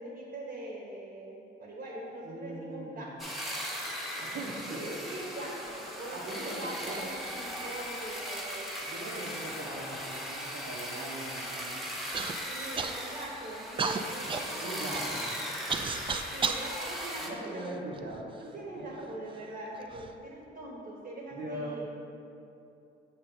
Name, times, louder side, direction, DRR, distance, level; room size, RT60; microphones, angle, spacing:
voice 1, 0.0-3.3 4.7-8.7 12.5-15.1 16.3-17.8 18.4-21.9, right 1 dB, 50° right, -3 dB, 1.1 m, -42 dB
voice 2, 2.2-3.1 4.2-4.9 6.1-7.0 8.9-11.8 14.6-15.3 17.2-18.3 19.0-19.1 21.3-21.9, right 2 dB, 75° right, -6 dB, 0.9 m, -40 dB
sound 1, 3.2-17.3, equal, ahead, 0.9 m, -38 dB
Human voice / Cough, 12.1-12.3 12.8-13.3 13.8-16.7 17.4-18.2 18.9-19.0 19.7-20.1, right 5 dB, 25° right, 0.3 m, -34 dB
6.6 x 2.8 x 5.4 m, 2.8 s
cardioid pair, 90°, 20 cm